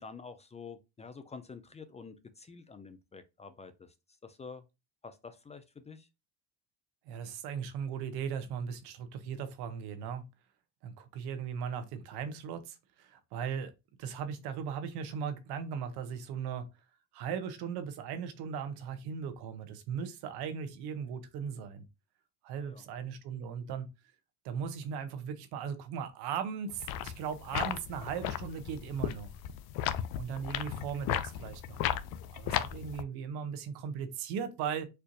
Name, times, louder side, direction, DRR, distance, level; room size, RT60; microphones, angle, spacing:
voice 1, 0.0-3.9 4.2-4.6 5.0-6.1 22.6-22.8, left 5 dB, 20° left, 0.4 m, -48 dB
voice 2, 7.1-10.2 10.8-13.7 14.0-16.7 17.1-21.8 22.4-23.9 24.4-29.3 30.2-32.1 32.3-34.9, right 7 dB, 75° right, 0.9 m, -38 dB
sound 1, 26.7-33.0, left 11 dB, 70° left, 0.5 m, -35 dB
4.4 x 2.5 x 2.5 m
supercardioid pair, 95°, 39 cm